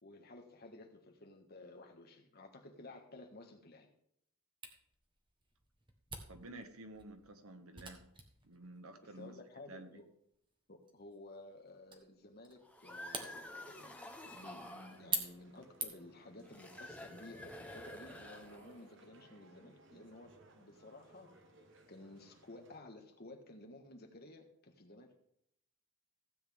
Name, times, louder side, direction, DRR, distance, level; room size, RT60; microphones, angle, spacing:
voice 1, 0.0-3.9 9.0-10.0 10.7-14.0 14.3-21.3 21.9-25.1, left 2 dB, 45° left, 3 dB, 1.5 m, -54 dB
Camera, 4.6-16.2, right 3 dB, 20° right, 1.3 m, -47 dB
voice 2, 6.3-8.0 8.4-9.4 9.7-10.0, right 2 dB, 80° right, 7 dB, 1.3 m, -51 dB
sound 1, 12.6-15.0 16.4-18.9, left 1 dB, 5° left, 0.9 m, -50 dB
sound 2, 14.4-22.8, right 2 dB, 55° right, 1.2 m, -61 dB
15.5 x 8.1 x 3.6 m, 0.73 s
head